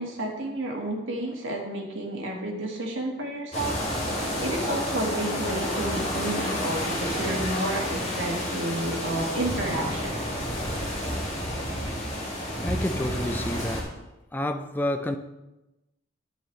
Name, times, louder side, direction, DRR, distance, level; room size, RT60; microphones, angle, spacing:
voice 1, 0.0-3.8 4.0-10.5, right 1 dB, 70° right, 0 dB, 1.8 m, -31 dB
sound 1, 3.5-13.8, equal, 30° left, 2.2 m, -30 dB
voice 2, 12.6-14.1 14.3-15.2, left 1 dB, 10° left, 7 dB, 0.4 m, -29 dB
10.5 x 7.7 x 3.3 m, 1.0 s
head